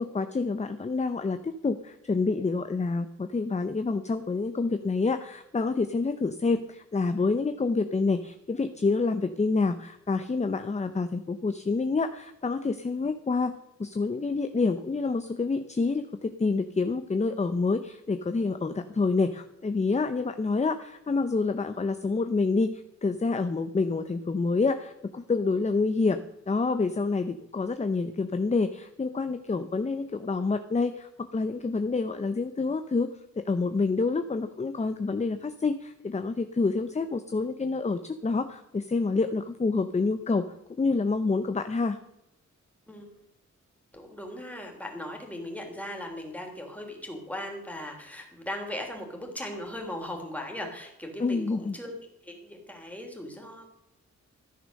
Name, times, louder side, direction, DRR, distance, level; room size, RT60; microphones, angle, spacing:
voice 1, 0.0-26.2 26.5-33.1 33.4-42.0 51.2-51.8, left 3 dB, 25° left, 9 dB, 0.7 m, -28 dB
voice 2, 43.9-51.9 52.2-53.7, left 1 dB, 5° left, 1 dB, 3.3 m, -38 dB
14.5 x 10.0 x 6.4 m, 0.84 s
wide cardioid pair, 165°, 29 cm